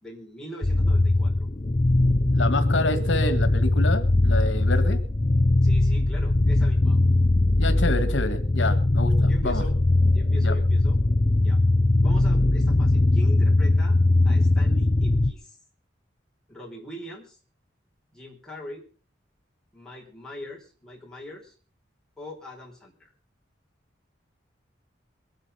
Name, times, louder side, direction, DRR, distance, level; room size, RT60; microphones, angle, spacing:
voice 1, 0.0-1.5 5.6-7.0 9.3-9.7 10.1-11.0 11.4-11.6 12.0-14.0 14.2-15.6 16.5-17.4 18.1-18.8 19.7-21.5 22.2-23.1, equal, 5° left, -4 dB, 5.0 m, -41 dB
sound 1, 0.6-15.3, left 2 dB, 30° left, 0.6 m, -21 dB
voice 2, 2.3-5.0 7.6-9.6 10.4-10.5, left 2 dB, 80° left, 9 dB, 1.7 m, -28 dB
22.5 x 9.1 x 5.7 m, 0.40 s
head